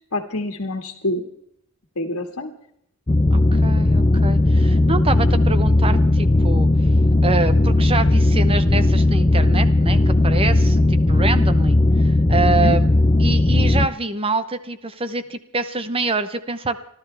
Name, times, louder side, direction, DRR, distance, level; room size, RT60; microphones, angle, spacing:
voice 1, 0.1-1.2 2.0-2.5 12.5-12.8, left 2 dB, 70° left, 2 dB, 1.8 m, -26 dB
sound 1, 3.1-13.9, left 2 dB, 25° left, 0.6 m, -17 dB
voice 2, 3.3-6.7 7.2-12.9 13.2-16.8, right 3 dB, 25° right, 11 dB, 0.9 m, -26 dB
29.0 x 12.5 x 3.4 m, 0.74 s
head